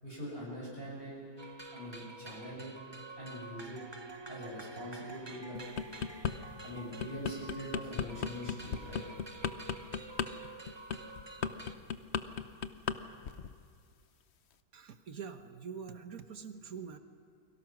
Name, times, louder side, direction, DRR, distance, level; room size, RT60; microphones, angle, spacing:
voice 1, 0.0-1.2 1.7-2.7 3.2-3.8 4.3-5.6 6.6-9.0, equal, 30° left, -5 dB, 7.1 m, -43 dB
sound 1, 1.4-11.7, right 3 dB, 20° right, 0.9 m, -48 dB
sound 2, 5.5-6.3 6.8-13.0 13.2-13.5, left 7 dB, 50° left, 0.8 m, -35 dB
voice 2, 14.7-17.0, right 6 dB, 50° right, 8 dB, 1.5 m, -44 dB
29.5 x 23.0 x 6.1 m, 2.2 s
omnidirectional pair, 2.0 m